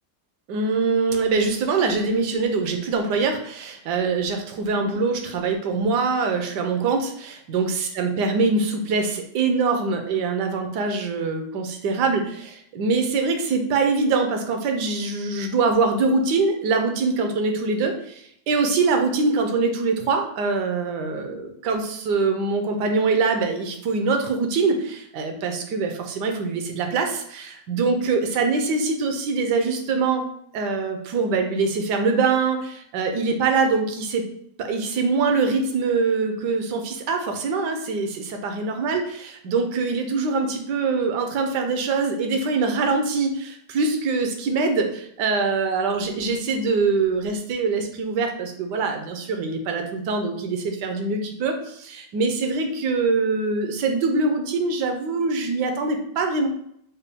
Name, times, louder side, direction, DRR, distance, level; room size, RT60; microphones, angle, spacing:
voice 1, 0.5-30.2 30.5-34.3 34.6-56.5, right 4 dB, 75° right, 5 dB, 1.2 m, -23 dB
4.2 x 2.2 x 3.3 m, 0.70 s
omnidirectional pair, 1.9 m